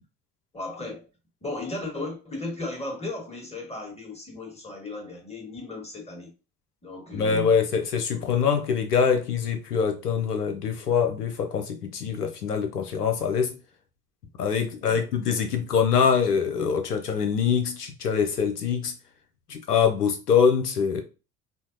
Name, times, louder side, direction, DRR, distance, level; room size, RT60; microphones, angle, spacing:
voice 1, 0.5-1.1 1.4-6.3 6.8-7.6 8.1-8.4 14.8-15.0, left 2 dB, 15° left, 1.4 m, -36 dB
voice 2, 7.1-13.6 14.4-18.9 19.5-21.0, left 6 dB, 85° left, 0.6 m, -24 dB
4.5 x 2.1 x 2.6 m
figure-of-eight pair, 55°, 46 cm